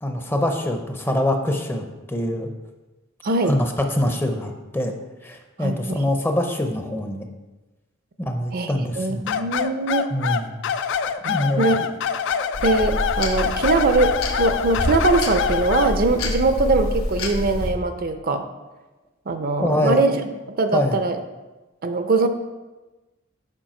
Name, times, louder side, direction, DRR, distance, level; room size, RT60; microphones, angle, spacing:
voice 1, 0.0-2.5 3.4-4.9 5.2-7.3 8.2-9.4 10.1-10.5 11.3-11.7 19.6-20.0 20.7-21.0, left 1 dB, 10° left, 4 dB, 0.6 m, -24 dB
voice 2, 3.2-3.6 5.6-6.1 8.5-10.1 11.2-11.9 12.6-18.4 19.3-20.2 20.6-21.2 21.8-22.3, right 3 dB, 45° right, 7 dB, 0.5 m, -22 dB
sound 1, 9.3-16.0, left 7 dB, 60° left, 0.4 m, -25 dB
sound 2, 12.5-17.7, left 1 dB, 90° left, 1.1 m, -27 dB
7.5 x 5.4 x 4.3 m, 1.1 s
head